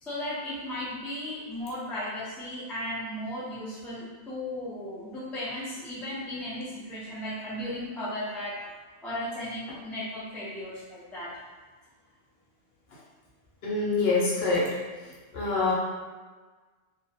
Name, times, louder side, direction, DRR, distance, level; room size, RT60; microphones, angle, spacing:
voice 1, 0.0-8.6 9.0-11.3, left 1 dB, ahead, -9 dB, 0.4 m, -35 dB
voice 2, 13.6-14.7 15.3-15.7, left 3 dB, 70° left, -5 dB, 0.9 m, -25 dB
2.4 x 2.1 x 2.6 m, 1.4 s
omnidirectional pair, 1.1 m